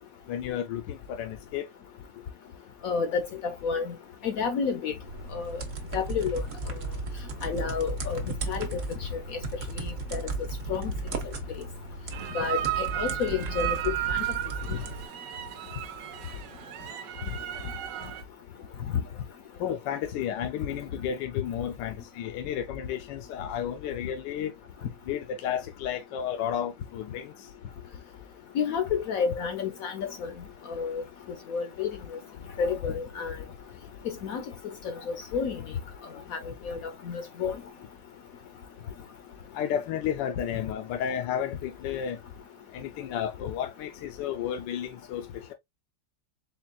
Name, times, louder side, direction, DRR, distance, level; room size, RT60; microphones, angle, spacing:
voice 1, 0.3-1.7 19.6-24.5 25.1-27.3 39.5-42.2 42.7-45.5, left 9 dB, 85° left, 1.3 m, -32 dB
voice 2, 2.8-4.0 4.2-4.9 5.3-5.6 5.9-6.4 7.4-9.4 9.8-10.2 10.7-10.9 11.6-11.7 12.3-14.2 14.7-14.8 28.5-30.3 30.7-31.0 31.5-31.9 32.6-33.4 34.0-34.4 34.8-35.6 36.3-36.8 37.0-37.6, left 6 dB, 65° left, 0.9 m, -30 dB
sound 1, 5.0-15.1, right 3 dB, 55° right, 1.2 m, -36 dB
sound 2, 12.1-18.2, right 13 dB, 75° right, 1.2 m, -34 dB
4.4 x 3.5 x 2.3 m
omnidirectional pair, 1.9 m